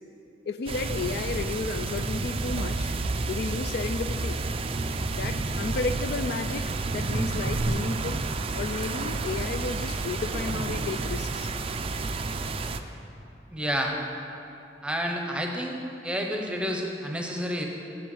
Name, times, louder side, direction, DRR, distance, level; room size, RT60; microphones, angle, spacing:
voice 1, 0.5-3.0 3.2-4.4 5.1-8.2 8.5-11.5, left 4 dB, 55° left, 9 dB, 0.3 m, -33 dB
sound 1, 0.7-12.8, right 3 dB, 30° right, 0.4 m, -30 dB
voice 2, 13.5-14.0 14.8-17.7, equal, 5° right, 1 dB, 0.8 m, -30 dB
7.8 x 7.5 x 7.1 m, 2.8 s
head